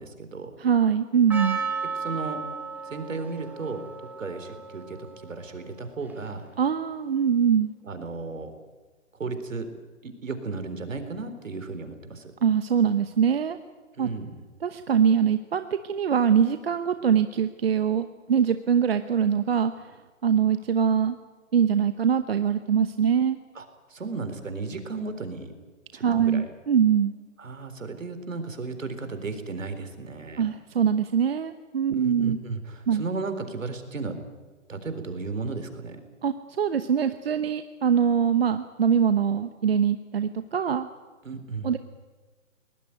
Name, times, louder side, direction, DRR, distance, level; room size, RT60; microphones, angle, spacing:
voice 1, 0.0-0.5 2.0-2.4 2.9-3.8 4.2-6.4 7.8-8.5 9.2-9.7 10.0-12.3 14.0-14.3 23.6-23.7 23.9-25.5 25.9-26.5 27.4-30.4 31.9-34.2 34.7-36.0 41.2-41.7, right 4 dB, 70° right, 9 dB, 4.1 m, -34 dB
voice 2, 0.6-1.6 6.6-7.7 12.4-13.6 14.0-14.1 14.6-20.0 20.2-21.2 21.5-23.4 25.9-27.1 30.4-32.4 32.9-33.0 36.2-40.9 41.6-41.8, right 7 dB, 50° right, 10 dB, 1.0 m, -23 dB
Percussion, 1.3-6.5, right 5 dB, 5° right, 1.8 m, -35 dB
22.5 x 20.0 x 9.5 m, 1.3 s
hypercardioid pair, 155°, 40 cm